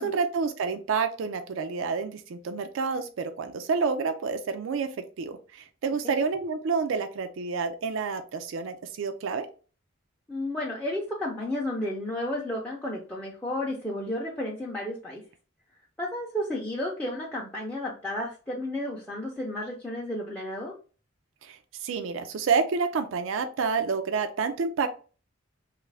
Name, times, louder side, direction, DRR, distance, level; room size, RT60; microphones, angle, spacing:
voice 1, 0.0-4.9 5.2-9.5 21.4-24.9, right 5 dB, 75° right, 8 dB, 0.4 m, -29 dB
voice 2, 10.3-15.2 16.0-20.7, left 1 dB, 10° left, -3 dB, 0.5 m, -32 dB
3.0 x 2.4 x 3.2 m, 0.36 s
head